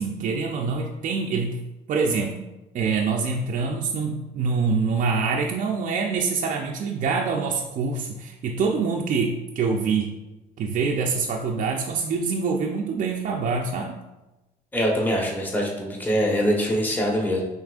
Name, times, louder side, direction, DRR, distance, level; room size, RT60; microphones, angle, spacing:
voice 1, 0.0-1.6 1.9-2.4 2.7-10.2 10.6-14.0, right 4 dB, 50° right, 0 dB, 0.5 m, -25 dB
voice 2, 14.7-17.4, equal, 10° left, -1 dB, 0.9 m, -23 dB
6.0 x 3.1 x 2.4 m, 1.0 s
cardioid pair, 110°, 17 cm